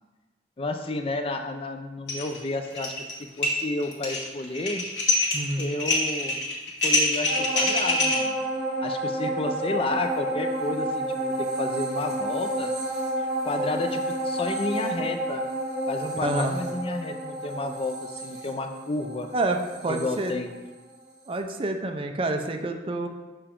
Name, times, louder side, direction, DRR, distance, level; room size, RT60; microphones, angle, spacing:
voice 1, 0.6-2.9 3.4-4.9 5.6-6.4 6.8-8.4 8.8-12.7 13.2-15.4 15.9-19.3 19.9-20.5, left 2 dB, 30° left, 6 dB, 0.4 m, -31 dB
sound 1, 2.1-2.4 2.6-3.1 3.4-8.1, left 2 dB, 75° left, 1.6 m, -25 dB
voice 2, 5.3-5.7 16.1-16.5 19.3-20.3 21.3-23.1, right 2 dB, 30° right, 4 dB, 0.5 m, -28 dB
sound 2, 7.3-21.0 21.3-21.4, right 1 dB, 65° right, 1.9 m, -30 dB
6.8 x 5.6 x 3.7 m, 1.2 s
head